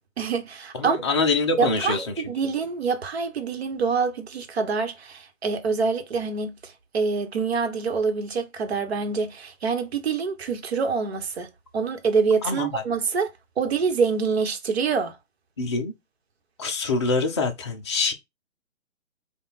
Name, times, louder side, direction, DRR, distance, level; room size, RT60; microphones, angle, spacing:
voice 1, 0.2-1.0 1.6-13.3 13.6-15.2, right 5 dB, 50° right, 1.2 m, -26 dB
voice 2, 0.7-2.3 12.4-12.8 15.6-15.9 16.6-18.1, left 3 dB, 20° left, 0.5 m, -25 dB
5.0 x 2.4 x 4.0 m
figure-of-eight pair, 140°, 40 cm